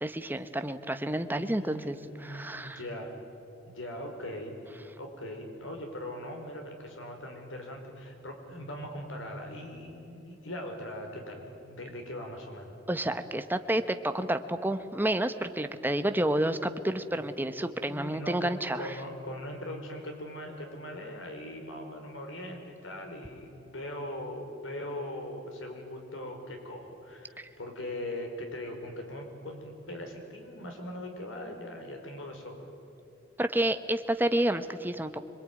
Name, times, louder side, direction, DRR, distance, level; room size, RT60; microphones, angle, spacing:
voice 1, 0.0-2.0 2.2-2.8 12.9-18.9 27.4-27.5 33.4-35.2, right 1 dB, 10° right, 9 dB, 1.0 m, -30 dB
voice 2, 1.3-3.1 3.7-12.7 17.9-32.7, left 1 dB, 85° left, 3 dB, 4.8 m, -40 dB
26.0 x 22.5 x 9.5 m, 2.9 s
head